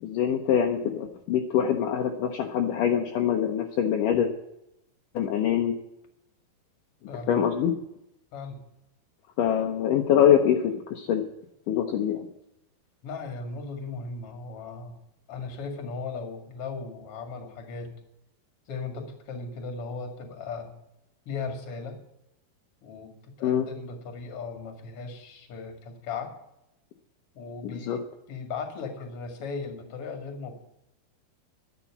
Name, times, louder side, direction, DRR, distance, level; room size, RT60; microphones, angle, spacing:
voice 1, 0.0-4.3 5.2-5.7 7.3-7.7 9.4-11.2 11.7-12.3 23.4-23.7 27.6-28.0, left 9 dB, 75° left, 3 dB, 2.1 m, -24 dB
voice 2, 7.1-7.4 8.3-8.6 13.0-15.0 15.3-17.9 18.7-20.7 21.3-22.0 22.8-26.3 27.3-30.5, left 4 dB, 45° left, 5 dB, 2.4 m, -37 dB
11.0 x 7.3 x 9.6 m, 0.82 s
omnidirectional pair, 4.7 m